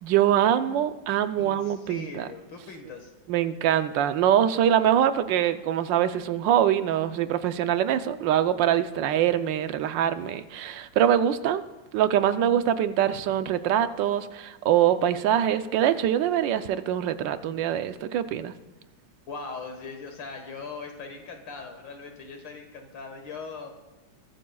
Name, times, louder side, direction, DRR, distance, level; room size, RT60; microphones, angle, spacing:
voice 1, 0.0-2.3 3.3-11.6 11.9-18.5, right 10 dB, 75° right, 11 dB, 1.3 m, -24 dB
voice 2, 1.4-3.1 19.3-23.8, left 4 dB, 70° left, 4 dB, 2.2 m, -40 dB
22.0 x 14.0 x 2.3 m, 1.1 s
omnidirectional pair, 2.1 m